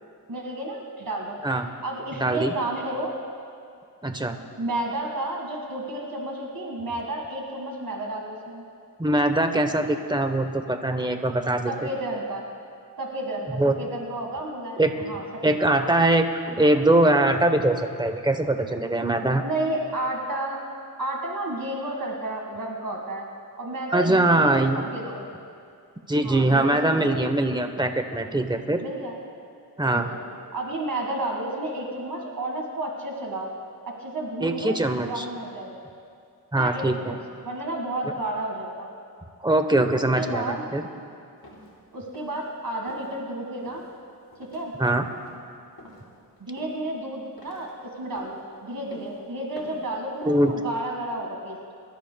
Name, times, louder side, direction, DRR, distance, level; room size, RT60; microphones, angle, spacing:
voice 1, 0.3-3.1 4.6-8.6 11.7-12.4 13.0-15.2 15.6-15.7 19.4-20.6 21.0-23.3 23.6-24.6 24.9-25.3 26.2-27.2 28.8-29.1 29.9-30.2 30.5-33.5 33.9-35.8 36.5-38.9 39.9-40.6 41.9-43.8 44.4-44.7 46.4-47.7 48.0-51.6, right 1 dB, 60° right, -1 dB, 1.9 m, -31 dB
voice 2, 2.1-2.5 4.0-4.4 9.0-11.7 13.5-13.7 14.8-14.9 15.4-19.4 23.9-24.9 26.1-28.8 29.8-30.0 34.4-35.3 36.5-37.1 39.4-40.8 44.8-45.0 50.3-50.5, right 1 dB, 10° right, 7 dB, 0.9 m, -22 dB
sound 1, 41.4-41.7 42.1-42.5 42.9-43.1 43.6-43.9 44.3-44.6 45.0-45.3 45.8-46.0 46.6-46.9 47.4-47.7 48.1-48.4 48.9-49.2 49.6-49.9 50.2-50.5, left 1 dB, 70° left, 3.1 m, -47 dB
24.0 x 13.5 x 2.3 m, 2.4 s
wide cardioid pair, 65°, 38 cm